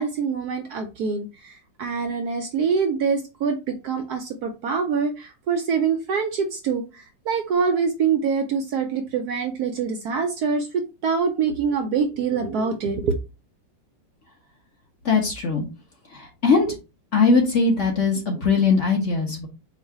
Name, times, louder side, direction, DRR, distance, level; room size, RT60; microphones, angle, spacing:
voice 1, 0.0-13.2, right 5 dB, 70° right, 5 dB, 1.0 m, -25 dB
voice 2, 15.0-15.6 16.1-16.7 17.1-19.5, left 4 dB, 45° left, 1 dB, 1.1 m, -20 dB
4.7 x 2.4 x 4.6 m, 0.28 s
omnidirectional pair, 2.1 m